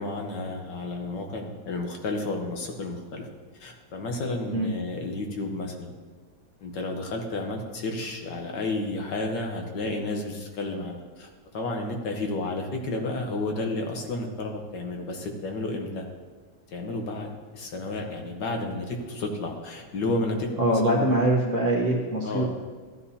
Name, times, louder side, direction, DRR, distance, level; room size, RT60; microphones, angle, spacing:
voice 1, 0.0-3.3 3.6-5.9 6.6-16.1 16.7-21.1 22.2-22.5, left 2 dB, 65° left, 2 dB, 1.6 m, -31 dB
voice 2, 20.6-22.5, right 1 dB, 45° right, -1 dB, 1.3 m, -23 dB
14.5 x 9.9 x 2.8 m, 1.5 s
omnidirectional pair, 2.2 m